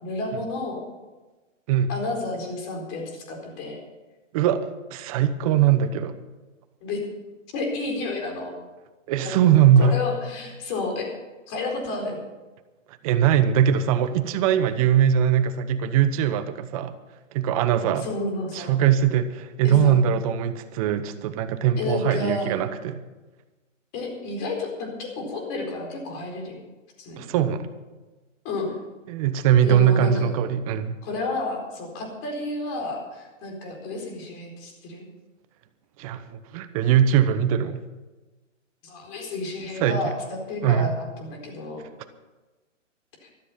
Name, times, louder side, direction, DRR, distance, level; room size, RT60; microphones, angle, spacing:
voice 1, 0.0-0.8 1.9-3.8 6.8-7.0 7.5-8.5 9.2-11.1 11.5-12.2 17.8-18.8 19.6-20.0 21.8-22.5 23.9-26.6 27.0-27.3 28.4-28.7 29.6-30.3 31.0-35.0 38.8-40.9 41.2-41.8 43.2-43.3, left 2 dB, 30° left, 1 dB, 4.3 m, -31 dB
voice 2, 4.3-6.1 9.1-9.9 13.0-16.9 17.3-18.1 18.5-23.0 27.2-27.7 29.1-31.0 36.0-37.8 39.8-40.1 40.6-40.9, right 9 dB, 30° right, 12 dB, 0.9 m, -21 dB
14.0 x 13.5 x 5.6 m, 1.2 s
hypercardioid pair, 135°, 39 cm